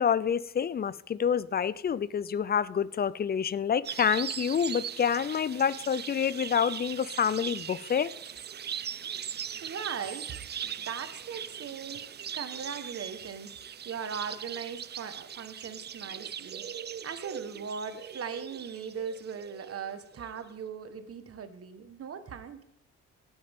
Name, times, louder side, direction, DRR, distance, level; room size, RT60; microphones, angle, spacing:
voice 1, 0.0-8.1, left 7 dB, 30° left, 0.5 m, -28 dB
sound 1, 3.8-20.4, right 8 dB, 35° right, 0.5 m, -40 dB
voice 2, 9.6-10.3 10.6-13.5 13.8-16.6 17.0-22.6, right 6 dB, 50° right, 1.4 m, -39 dB
17.5 x 8.8 x 3.7 m
cardioid pair, 90°, 30 cm